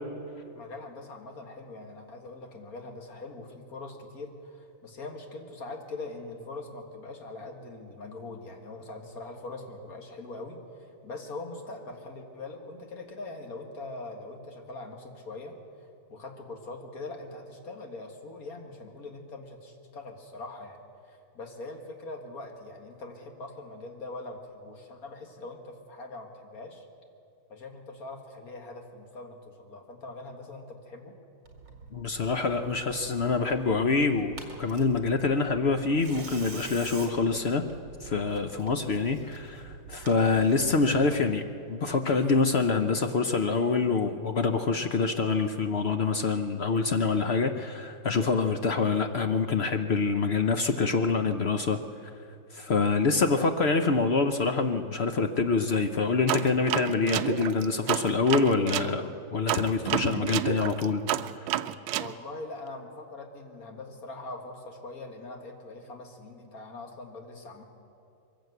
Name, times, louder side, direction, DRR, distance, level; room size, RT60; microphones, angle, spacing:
voice 1, 0.5-15.6 16.1-26.9 27.5-31.2 62.0-67.6, left 2 dB, 50° left, 3 dB, 2.2 m, -42 dB
Tearing, 31.4-41.0, right 4 dB, 65° right, 3.1 m, -46 dB
voice 2, 31.9-37.6 38.0-51.8 52.5-61.0 61.4-61.5, left 4 dB, 65° left, 6 dB, 0.6 m, -26 dB
sound 1, 56.3-58.9 59.5-62.1, right 12 dB, 90° right, 1.4 m, -30 dB
22.5 x 15.5 x 8.0 m, 2.6 s
omnidirectional pair, 2.1 m